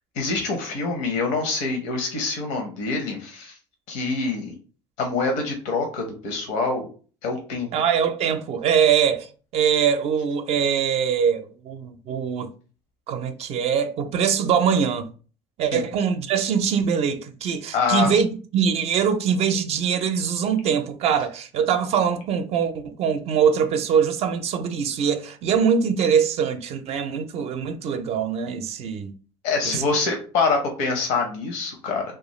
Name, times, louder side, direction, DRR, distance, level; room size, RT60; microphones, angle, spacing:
voice 1, 0.2-3.6 3.9-4.5 5.0-6.9 7.2-7.7 15.7-15.8 17.7-18.1 29.4-32.0, left 4 dB, 70° left, 0.7 m, -25 dB
voice 2, 7.7-12.5 13.1-15.1 15.6-18.3 18.5-29.1 29.6-29.9, right 7 dB, 50° right, 0.4 m, -23 dB
2.3 x 2.3 x 3.0 m
supercardioid pair, 80°, 13 cm